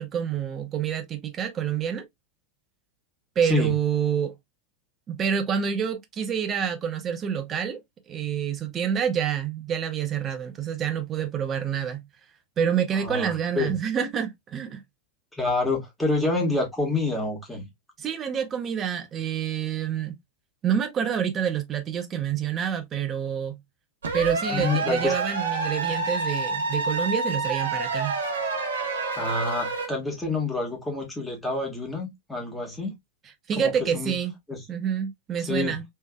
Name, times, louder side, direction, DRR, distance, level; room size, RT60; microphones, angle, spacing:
voice 1, 0.0-2.1 3.4-4.3 5.1-7.8 8.1-12.1 12.6-14.8 18.0-20.2 20.6-23.6 24.1-28.2 33.5-34.3 34.7-35.8, right 8 dB, 25° right, 0.7 m, -27 dB
voice 2, 3.4-3.7 13.0-13.7 15.3-17.7 24.5-25.1 29.1-32.9 33.6-34.2 34.5-34.6 35.4-35.8, left 3 dB, 5° left, 1.5 m, -28 dB
sound 1, 24.0-29.9, right 3 dB, 65° right, 1.0 m, -28 dB
3.4 x 3.2 x 2.2 m
figure-of-eight pair, 90°, 0 cm